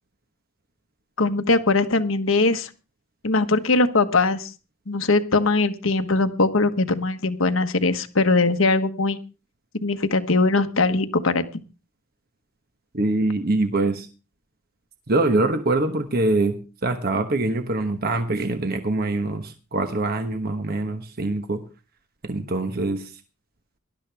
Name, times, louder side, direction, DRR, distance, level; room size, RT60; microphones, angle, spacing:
voice 1, 1.2-2.7 3.2-4.5 4.9-9.2 9.8-11.4, left 3 dB, 70° left, 8 dB, 1.3 m, -21 dB
voice 2, 12.9-14.1 15.1-16.5 16.8-21.6 22.2-23.1, right 2 dB, 45° right, 7 dB, 1.2 m, -24 dB
19.0 x 12.5 x 3.4 m, 0.32 s
head